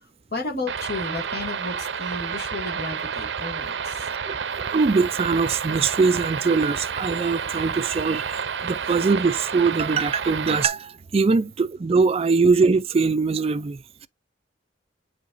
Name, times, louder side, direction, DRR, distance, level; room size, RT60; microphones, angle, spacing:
voice 1, 0.3-4.0, left 3 dB, 60° left, 2.1 m, -33 dB
sound 1, 0.7-10.7, right 6 dB, 70° right, 0.6 m, -30 dB
voice 2, 4.2-14.1, right 4 dB, 35° right, 0.4 m, -22 dB
8.9 x 5.1 x 2.6 m
head